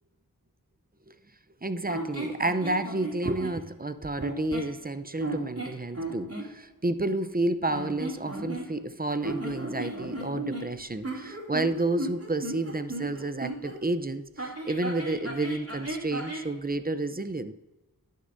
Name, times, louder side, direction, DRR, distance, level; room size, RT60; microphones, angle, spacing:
voice 1, 1.6-17.5, right 2 dB, 25° right, 0.6 m, -30 dB
sound 1, 1.9-3.6 4.2-4.8 5.2-6.5 7.7-8.9 9.2-13.8 14.4-16.5, right 1 dB, 40° right, 2.9 m, -35 dB
18.5 x 6.6 x 2.6 m
wide cardioid pair, 40°, 38 cm